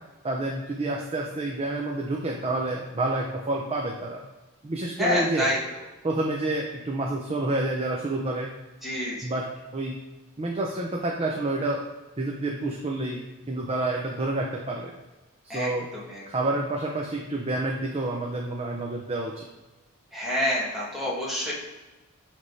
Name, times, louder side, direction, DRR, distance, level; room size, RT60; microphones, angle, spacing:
voice 1, 0.2-4.2 4.6-5.5 6.0-8.5 9.2-9.5 9.7-10.0 10.4-11.8 12.2-13.2 13.5-14.9 15.4-15.9 16.3-19.4, right 2 dB, 30° right, 0 dB, 0.6 m, -28 dB
voice 2, 5.0-5.6 8.8-9.3 15.5-16.2 20.1-21.5, left 1 dB, ahead, -7 dB, 2.1 m, -28 dB
8.2 x 3.5 x 4.1 m, 1.2 s
head